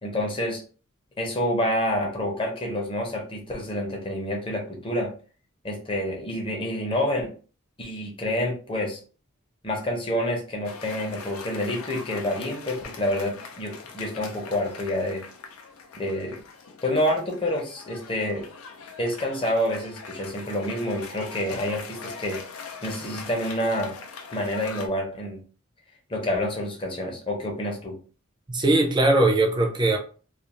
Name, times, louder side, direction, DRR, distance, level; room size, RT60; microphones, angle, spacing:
voice 1, 0.0-0.6 1.2-5.1 5.6-7.3 7.8-9.0 9.6-15.2 16.0-16.4 16.8-18.4 19.0-22.4 22.8-23.9 24.3-25.4 26.1-28.0, left 1 dB, 25° left, 0.7 m, -28 dB
Cheering / Applause, 10.6-24.9, left 5 dB, 85° left, 0.5 m, -42 dB
voice 2, 28.5-30.0, right 2 dB, 20° right, 0.5 m, -20 dB
2.4 x 2.4 x 3.0 m
head